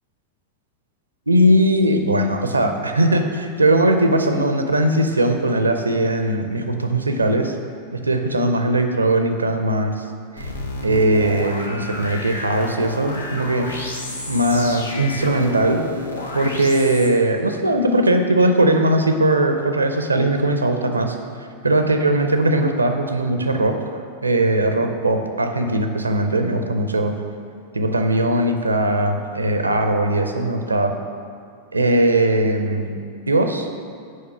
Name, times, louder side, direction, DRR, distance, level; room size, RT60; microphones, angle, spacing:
voice 1, 1.3-7.5 7.9-10.0 10.4-10.5 10.8-13.7 14.3-15.8 16.3-23.7 24.2-27.1 27.7-30.9 31.7-33.0 33.3-33.7, right 1 dB, 80° right, 6 dB, 0.6 m, -19 dB
sound 1, 10.4-17.1, left 1 dB, 75° left, 0.8 m, -31 dB
6.5 x 5.2 x 5.5 m, 2.4 s
figure-of-eight pair, 90°, 0 cm